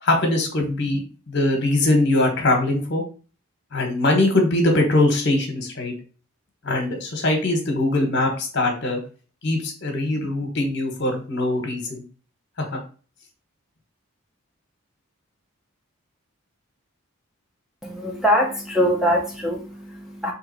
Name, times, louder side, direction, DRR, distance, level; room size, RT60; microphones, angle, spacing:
voice 1, 0.0-3.0 3.7-5.9 6.6-9.0 9.4-12.0 12.7-12.8, left 2 dB, 55° left, 3 dB, 1.2 m, -22 dB
voice 2, 17.8-20.3, equal, ahead, 0 dB, 0.5 m, -23 dB
3.9 x 2.9 x 4.0 m, 0.37 s
head